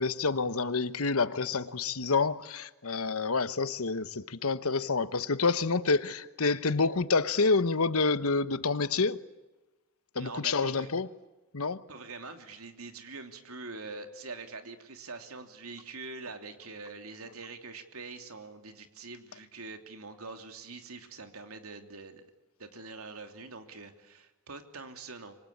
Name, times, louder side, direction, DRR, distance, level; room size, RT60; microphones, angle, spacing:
voice 1, 0.0-9.2 10.1-11.1 11.5-11.8, left 4 dB, 80° left, 1.1 m, -28 dB
voice 2, 10.1-10.9 11.9-22.3 22.6-25.4, right 3 dB, 85° right, 3.2 m, -44 dB
27.5 x 24.0 x 8.6 m
head